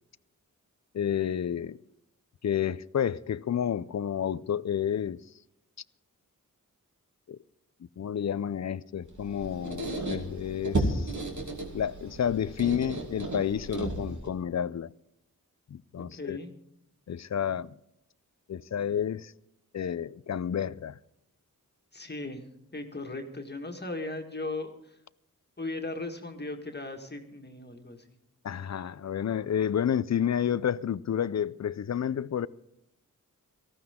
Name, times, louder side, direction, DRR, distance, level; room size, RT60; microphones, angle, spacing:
voice 1, 0.9-1.8 2.4-5.2 7.3-7.4 8.0-11.1 11.7-14.9 15.7-16.4 17.1-17.7 18.5-19.3 19.7-21.0 28.4-32.5, left 9 dB, 55° left, 0.5 m, -30 dB
Squeak, 9.1-14.3, right 2 dB, 60° right, 2.8 m, -34 dB
voice 2, 16.0-16.5 21.9-22.5 22.7-25.0 25.6-28.0, left 2 dB, 30° left, 1.8 m, -37 dB
18.5 x 14.5 x 3.7 m
wide cardioid pair, 70°, 34 cm